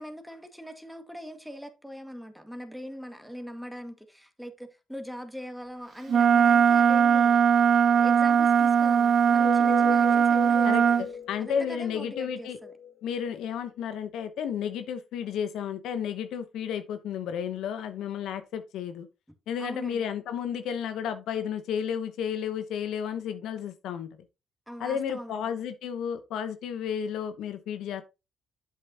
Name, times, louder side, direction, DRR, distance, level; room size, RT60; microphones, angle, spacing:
voice 1, 0.0-7.4 7.9-11.0 11.4-12.7 19.6-20.1 24.7-25.6, equal, ahead, 1.9 m, -41 dB
Wind instrument woodwind instrument, 6.1-11.0, right 7 dB, 55° right, 0.4 m, -20 dB
sound 1, 9.2-13.8, left 7 dB, 50° left, 1.7 m, -39 dB
voice 2, 10.6-12.6 13.0-19.1 19.5-24.1 24.8-28.0, left 8 dB, 80° left, 0.9 m, -32 dB
8.6 x 7.6 x 2.8 m
supercardioid pair, 70°, 0 cm